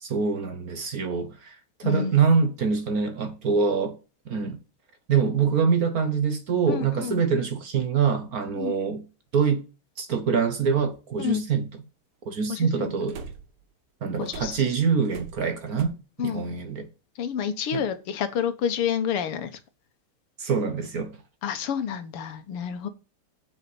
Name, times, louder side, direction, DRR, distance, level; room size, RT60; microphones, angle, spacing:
voice 1, 0.0-4.0 4.3-4.6 5.1-9.0 9.3-9.6 10.0-11.8 12.3-13.2 14.0-15.9 16.2-16.9 17.7-17.8 20.4-21.2, right 6 dB, 50° right, 1.4 m, -25 dB
voice 2, 1.8-2.2 6.7-7.2 8.6-8.7 11.2-11.5 12.5-12.9 14.2-14.6 16.2-16.4 17.2-19.5 21.4-22.9, left 8 dB, 85° left, 2.1 m, -29 dB
sound 1, 13.1-13.6 14.3-15.9, right 5 dB, 85° right, 2.0 m, -41 dB
8.1 x 5.7 x 7.7 m
omnidirectional pair, 2.4 m